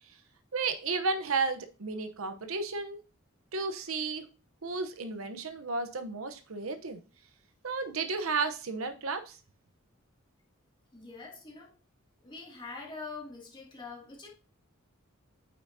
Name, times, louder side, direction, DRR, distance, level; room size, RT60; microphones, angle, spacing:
voice 1, 0.5-3.0 3.5-4.2 4.6-7.0 7.6-9.4, right 4 dB, 80° right, 8 dB, 0.9 m, -33 dB
voice 2, 10.9-11.7 12.2-14.3, left 3 dB, 25° left, -2 dB, 2.3 m, -44 dB
8.5 x 5.7 x 2.8 m, 0.33 s
head